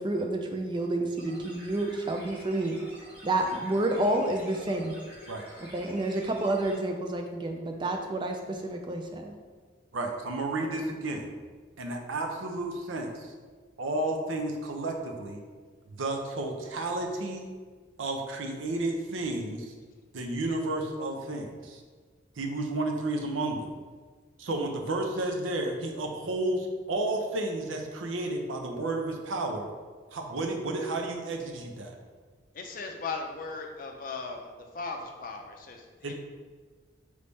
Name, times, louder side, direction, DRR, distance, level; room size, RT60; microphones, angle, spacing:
voice 1, 0.0-2.8 3.2-4.9 5.7-9.3, right 1 dB, 25° right, 3 dB, 0.3 m, -29 dB
sound 1, 1.2-6.7, equal, 10° right, 1.0 m, -49 dB
voice 2, 9.9-11.3 11.8-13.3 13.8-15.4 15.9-17.5 18.0-19.7 20.1-21.8 22.4-23.7 24.4-29.7 30.1-32.0 36.0-36.1, right 2 dB, 85° right, 3 dB, 0.6 m, -32 dB
voice 3, 32.6-34.4 34.7-36.1, left 4 dB, 45° left, 3 dB, 0.5 m, -37 dB
4.0 x 3.2 x 3.5 m, 1.5 s
head